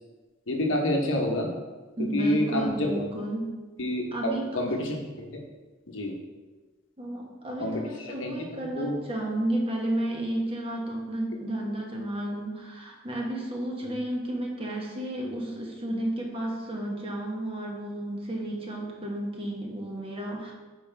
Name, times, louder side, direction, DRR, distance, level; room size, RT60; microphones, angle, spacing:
voice 1, 0.5-1.5 2.0-3.1 3.8-5.4 5.9-6.1 7.6-9.0 13.8-13.9, left 1 dB, 70° left, 1 dB, 1.1 m, -28 dB
voice 2, 2.0-3.6 4.1-4.6 7.0-20.5, right 1 dB, 30° right, -1 dB, 1.2 m, -32 dB
7.8 x 5.2 x 3.4 m, 1.3 s
head